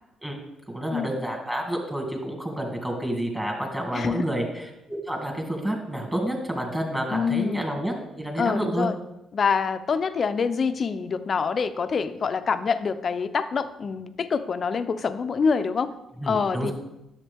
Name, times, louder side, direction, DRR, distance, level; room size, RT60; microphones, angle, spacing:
voice 1, 0.7-8.9 16.2-16.7, right 1 dB, 10° right, 0 dB, 2.2 m, -29 dB
voice 2, 3.9-4.3 7.1-7.7 8.4-9.0 9.3-15.9 16.3-16.7, left 5 dB, 45° left, 11 dB, 0.6 m, -26 dB
10.5 x 7.3 x 3.5 m, 0.92 s
cardioid pair, 90°, 0 cm